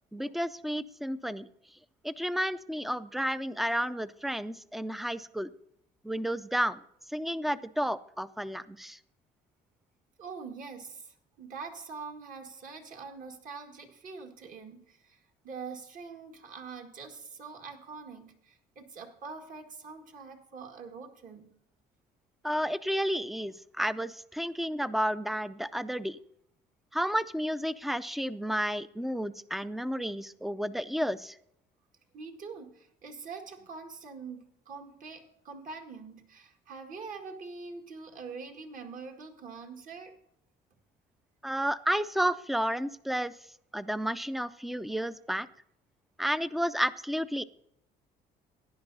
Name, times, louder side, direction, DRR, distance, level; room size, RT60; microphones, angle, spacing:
voice 1, 0.1-1.5 2.0-5.5 6.0-6.8 7.1-9.0 22.4-26.2 26.9-31.4 41.4-43.3 43.7-45.5 46.2-47.4, equal, ahead, 16 dB, 0.4 m, -31 dB
voice 2, 10.2-21.5 32.1-40.1, right 4 dB, 50° right, 4 dB, 1.8 m, -44 dB
16.0 x 10.5 x 2.7 m, 0.75 s
cardioid pair, 110°, 17 cm